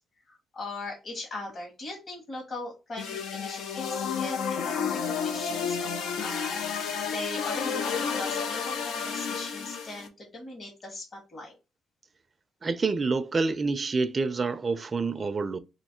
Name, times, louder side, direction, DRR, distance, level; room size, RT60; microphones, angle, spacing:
voice 1, 0.3-7.8 8.1-11.5, left 2 dB, 40° left, 1.7 m, -40 dB
sound 1, 3.0-10.1, left 6 dB, 80° left, 0.6 m, -31 dB
voice 2, 12.6-15.6, right 4 dB, 35° right, 0.4 m, -27 dB
3.1 x 2.8 x 2.8 m
cardioid pair, 90°, 0 cm